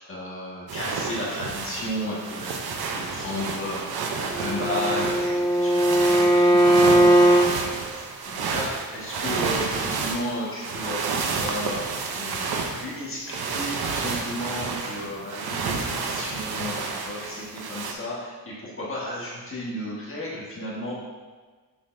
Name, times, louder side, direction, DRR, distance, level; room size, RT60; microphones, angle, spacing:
voice 1, 0.0-11.8 12.1-20.9, left 1 dB, 35° left, -6 dB, 1.6 m, -34 dB
sound 1, 0.7-17.9, right 4 dB, 90° right, 0.8 m, -30 dB
Bowed string instrument, 4.3-7.5, right 1 dB, 10° left, 0.5 m, -18 dB
6.9 x 6.6 x 2.6 m, 1.4 s
wide cardioid pair, 140°, 36 cm